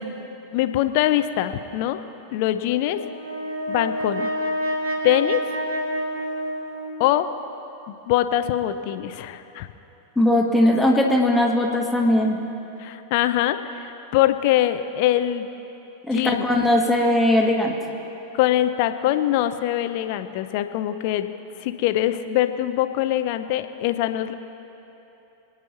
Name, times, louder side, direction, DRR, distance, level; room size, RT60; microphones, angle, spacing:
voice 1, 0.5-2.0 2.3-3.0 3.7-4.3 5.0-5.4 7.0-7.3 7.9-9.7 12.8-15.5 16.1-16.5 18.3-21.3 21.6-24.3, left 13 dB, 45° left, 10 dB, 0.6 m, -23 dB
Brass instrument, 2.8-7.2, equal, 70° right, 2.6 m, -28 dB
voice 2, 10.2-12.4 16.1-17.8, left 1 dB, 5° left, -1 dB, 2.0 m, -19 dB
25.5 x 9.6 x 4.2 m, 3.0 s
figure-of-eight pair, 90°, 0 cm